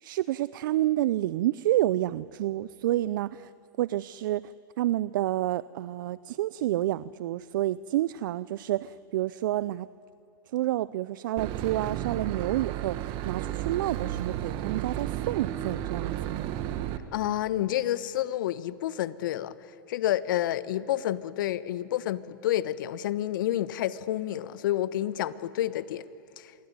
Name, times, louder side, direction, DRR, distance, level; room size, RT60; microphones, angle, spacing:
voice 1, 0.0-3.5 3.8-4.4 4.8-9.9 10.5-16.5, right 14 dB, 65° right, 18 dB, 0.5 m, -29 dB
Boat Water vehicle / Engine, 11.4-17.0, right 12 dB, 45° right, 1.8 m, -33 dB
voice 2, 17.1-19.5 19.9-26.0 26.4-26.5, left 13 dB, 65° left, 15 dB, 1.1 m, -29 dB
27.0 x 21.5 x 9.6 m, 2.5 s
hypercardioid pair, 105°, 12 cm